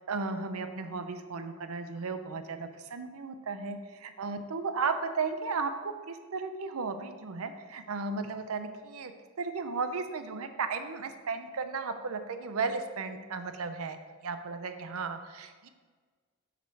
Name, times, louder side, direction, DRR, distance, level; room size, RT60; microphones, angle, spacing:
voice 1, 0.1-9.1 9.4-15.7, right 4 dB, 80° right, 8 dB, 0.6 m, -35 dB
6.9 x 4.9 x 4.6 m, 1.5 s
head